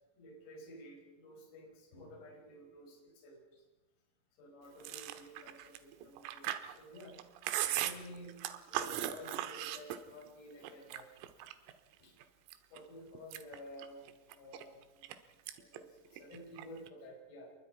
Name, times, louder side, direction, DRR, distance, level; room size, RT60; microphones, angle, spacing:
voice 1, 0.2-3.6 4.4-7.2 7.6-8.4 8.7-11.1 12.0-12.1 12.7-15.2 15.6-17.6, left 1 dB, 55° left, 0 dB, 7.1 m, -52 dB
Chewing mastication, 4.8-10.3 10.6-11.7 12.2-12.8 13.2-15.2 15.5-15.8 16.1-16.9, right 12 dB, 90° right, 4.0 m, -39 dB
28.5 x 23.5 x 5.1 m, 1.1 s
omnidirectional pair, 5.9 m